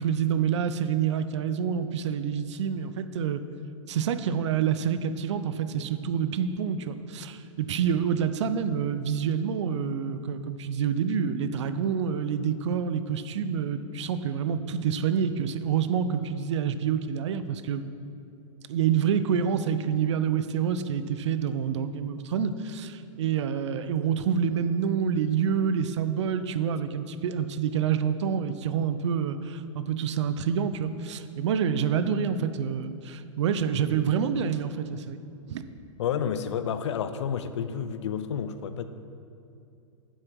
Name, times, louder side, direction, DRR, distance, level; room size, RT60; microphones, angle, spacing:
voice 1, 0.0-3.4 3.9-17.8 18.7-35.2 35.5-35.6, right 7 dB, 60° right, 11 dB, 0.6 m, -27 dB
voice 2, 36.0-38.8, left 8 dB, 60° left, 10 dB, 0.6 m, -30 dB
9.3 x 7.6 x 4.7 m, 2.6 s
figure-of-eight pair, 110°, 17 cm